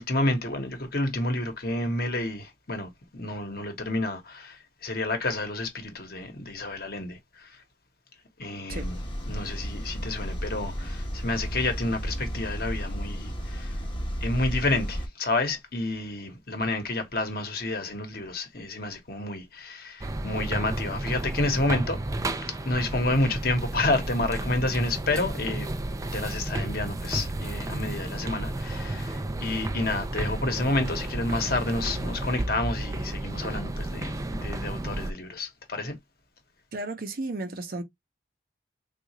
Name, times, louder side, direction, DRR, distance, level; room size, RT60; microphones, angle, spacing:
voice 1, 0.0-7.6 8.4-9.0 9.3-13.8 14.2-22.0 22.6-25.7 26.1-36.0, left 2 dB, 55° left, 1.0 m, -30 dB
sound 1, 8.7-15.1, equal, 30° left, 0.8 m, -33 dB
sound 2, 20.0-35.1, right 2 dB, 20° right, 0.3 m, -32 dB
voice 2, 36.7-37.8, right 2 dB, 55° right, 0.7 m, -33 dB
3.7 x 2.4 x 2.9 m
head